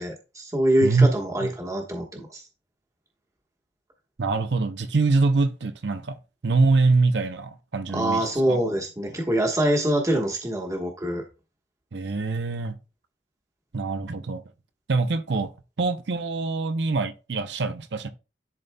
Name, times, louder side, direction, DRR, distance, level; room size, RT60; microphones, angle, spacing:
voice 1, 0.0-2.4 7.9-11.2, right 1 dB, 20° right, 1.2 m, -24 dB
voice 2, 4.2-8.6 11.9-12.8 13.7-14.4 14.9-15.5 15.8-18.1, right 3 dB, 70° right, 0.6 m, -24 dB
11.0 x 4.0 x 2.2 m
head